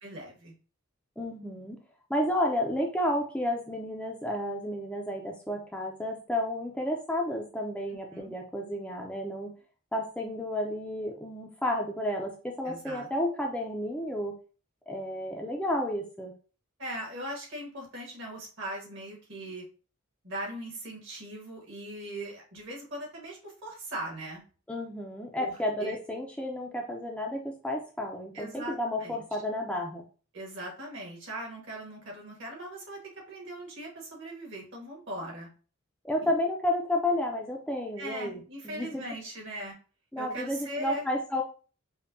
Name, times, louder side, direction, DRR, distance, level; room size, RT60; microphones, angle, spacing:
voice 1, 0.0-0.5 8.1-8.3 12.6-13.1 16.8-19.6 20.2-24.4 25.4-26.0 28.3-29.2 30.3-33.0 33.3-35.5 36.2-36.3 38.0-39.7 40.2-41.1, right 1 dB, 60° right, -1 dB, 1.4 m, -39 dB
voice 2, 1.2-1.8 2.1-9.5 9.9-14.3 14.9-16.3 24.7-30.0 36.0-38.4 38.6-38.9 40.1-41.4, left 1 dB, 5° left, 0 dB, 0.4 m, -31 dB
5.1 x 2.2 x 2.6 m, 0.38 s
head